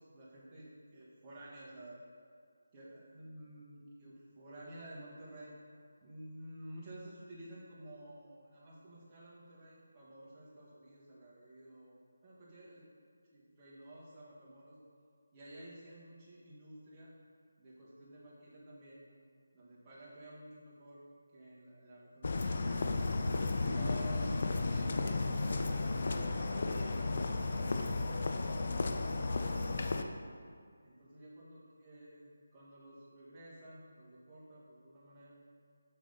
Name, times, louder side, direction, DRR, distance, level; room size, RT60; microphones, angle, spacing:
voice 1, 0.0-2.0 2.7-5.5 6.0-12.0 12.2-12.8 13.3-14.8 15.3-17.1 17.6-19.0 19.5-21.0 21.3-22.8 23.7-25.7 26.0-28.3 29.0-30.2 30.8-35.4, right 1 dB, 20° right, -8 dB, 1.6 m, -52 dB
sound 1, 22.2-30.0, left 3 dB, 50° left, 0.5 m, -33 dB
7.8 x 5.1 x 4.1 m, 2.1 s
figure-of-eight pair, 165°, 0 cm